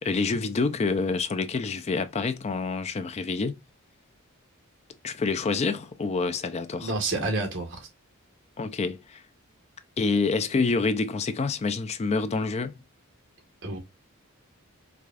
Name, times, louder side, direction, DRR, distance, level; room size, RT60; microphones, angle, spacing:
voice 1, 0.0-3.6 5.0-6.9 8.6-9.2 10.0-12.8, left 4 dB, 30° left, 0.4 m, -27 dB
voice 2, 6.8-7.9 13.6-13.8, right 2 dB, 60° right, 1.3 m, -29 dB
4.7 x 2.3 x 2.4 m
head